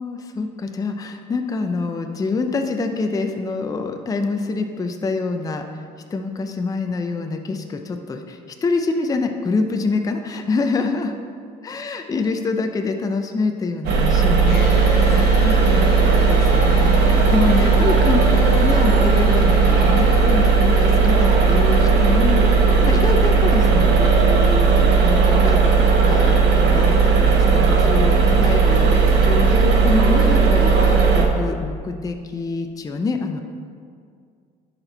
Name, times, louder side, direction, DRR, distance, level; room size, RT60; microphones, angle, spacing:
voice 1, 0.0-5.6 6.1-11.1 11.6-22.4 22.8-33.4, left 4 dB, 20° left, 5 dB, 0.5 m, -26 dB
sound 1, 13.8-31.3, right 4 dB, 85° right, 0.9 m, -16 dB
sound 2, 14.5-24.5, left 4 dB, 90° left, 0.7 m, -34 dB
10.0 x 4.4 x 3.9 m, 2.2 s
cardioid pair, 110°, 17 cm